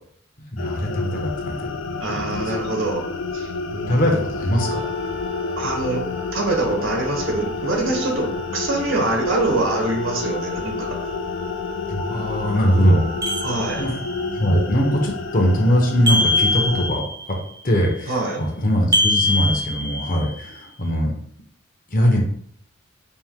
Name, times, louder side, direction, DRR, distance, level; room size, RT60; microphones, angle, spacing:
voice 1, 0.4-1.7 2.1-2.4 3.9-4.8 11.9-13.1 13.8-14.0 14.3-17.4 17.6-21.1 21.9-22.2, equal, 40° left, 1 dB, 0.9 m, -21 dB
sound 1, 0.6-16.9, left 3 dB, 65° left, 0.4 m, -30 dB
voice 2, 2.0-3.1 3.3-4.0 5.6-6.1 6.3-11.0 13.4-13.8 18.1-18.4, right 2 dB, 75° right, 1 dB, 1.1 m, -24 dB
Wind instrument woodwind instrument, 4.5-13.7, left 5 dB, 50° right, 0.8 m, -34 dB
sound 2, 13.2-14.2 16.1-17.3 18.9-20.4, left 1 dB, 20° right, 0.6 m, -22 dB
4.3 x 2.7 x 3.6 m, 0.66 s
head